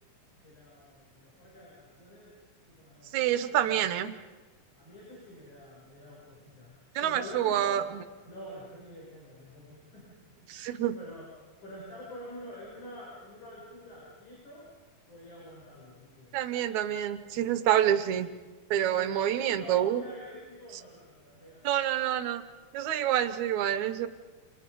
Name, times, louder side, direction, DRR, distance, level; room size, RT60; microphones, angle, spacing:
voice 1, 0.4-2.3 2.7-3.9 4.8-6.7 7.0-7.8 8.2-10.3 10.7-11.3 11.6-14.7 15.1-16.3 17.9-18.3 18.7-21.7, left 1 dB, 75° left, -7 dB, 8.7 m, -47 dB
voice 2, 3.1-4.1 7.0-8.0 10.5-10.9 16.3-18.3 18.7-20.0 21.6-22.4 22.7-24.1, right 11 dB, 75° right, 11 dB, 2.3 m, -27 dB
29.0 x 26.0 x 5.4 m, 1.3 s
omnidirectional pair, 3.5 m